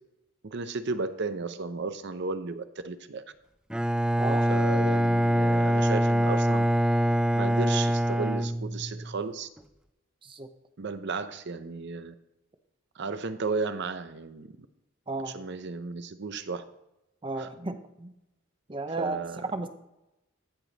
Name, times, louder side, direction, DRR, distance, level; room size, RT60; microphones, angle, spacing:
voice 1, 0.4-3.2 4.5-6.7 7.3-9.5 10.8-12.1 13.0-14.7 15.3-16.7 17.4-17.5 19.0-19.4, right 4 dB, 60° right, 11 dB, 0.7 m, -34 dB
Bowed string instrument, 3.7-9.2, right 1 dB, 5° right, 0.3 m, -24 dB
voice 2, 17.2-18.1 18.7-19.2 19.5-19.7, right 2 dB, 25° right, 9 dB, 0.8 m, -33 dB
14.5 x 5.1 x 4.1 m, 0.91 s
head